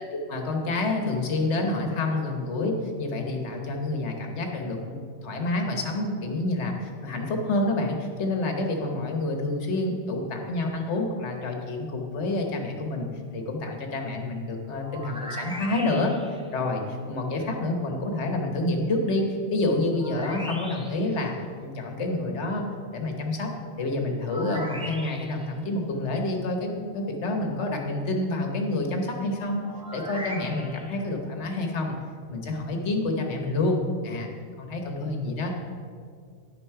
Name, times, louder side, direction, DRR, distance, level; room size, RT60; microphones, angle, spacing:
voice 1, 0.0-13.1 13.3-16.1 16.5-19.2 19.5-21.3 21.6-22.7 22.9-23.5 23.8-29.6 29.9-31.9 32.3-34.3 34.6-35.7, left 2 dB, 70° left, 3 dB, 1.4 m, -28 dB
sound 1, 14.8-16.5 20.0-21.2 24.3-25.5 29.6-31.0, equal, 5° right, 0.7 m, -39 dB
10.0 x 6.0 x 4.8 m, 2.1 s
omnidirectional pair, 1.2 m